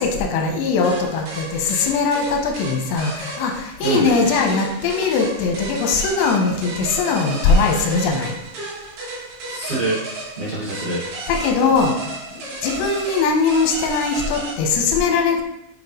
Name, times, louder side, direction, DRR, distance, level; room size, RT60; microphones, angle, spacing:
voice 1, 0.0-8.3 11.3-11.9 12.3-15.4, left 4 dB, 85° left, 2 dB, 3.2 m, -20 dB
sound 1, 0.8-14.5, right 2 dB, 70° right, 4.3 m, -33 dB
voice 2, 3.8-4.1 9.4-11.0, right 2 dB, 30° right, -10 dB, 0.9 m, -26 dB
9.3 x 5.3 x 3.2 m, 0.84 s
omnidirectional pair, 5.0 m